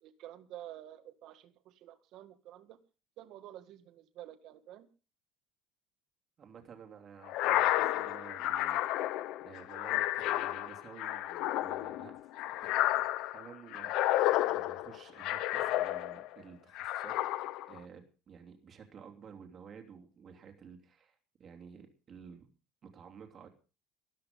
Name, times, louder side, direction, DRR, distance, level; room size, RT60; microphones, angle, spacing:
voice 1, 0.0-2.8 3.2-4.9, right 13 dB, 50° right, 9 dB, 2.0 m, -50 dB
voice 2, 6.4-12.3 12.6-22.5 22.8-23.5, right 7 dB, 30° right, 3 dB, 3.0 m, -53 dB
sound 1, 7.3-16.4 16.8-17.8, left 14 dB, 55° left, 0.9 m, -31 dB
13.5 x 13.0 x 5.3 m, 0.35 s
cardioid pair, 160°, 0 cm